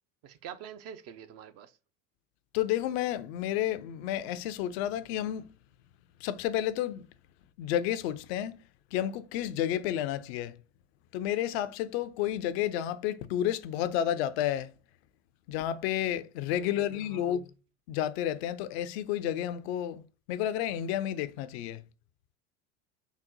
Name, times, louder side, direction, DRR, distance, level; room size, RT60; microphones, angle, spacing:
voice 1, 0.2-1.8 16.6-17.4, right 8 dB, 45° right, 0.5 m, -46 dB
voice 2, 2.5-5.5 6.2-7.1 7.6-8.6 8.9-10.6 11.1-14.7 15.5-17.5 17.9-20.0 20.3-21.8, left 11 dB, 65° left, 0.5 m, -31 dB
4.0 x 2.1 x 3.7 m
hypercardioid pair, 75°, 35 cm